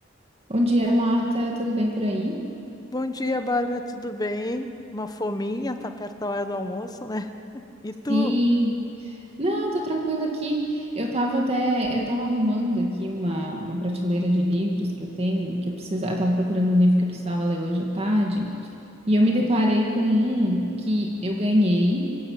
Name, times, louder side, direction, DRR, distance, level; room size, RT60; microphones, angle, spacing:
voice 1, 0.5-2.5 8.1-18.6 19.1-22.1, equal, 30° right, 0 dB, 2.1 m, -23 dB
voice 2, 2.9-7.3 7.5-8.3, left 1 dB, 20° left, 7 dB, 1.1 m, -29 dB
25.5 x 16.0 x 9.0 m, 2.8 s
head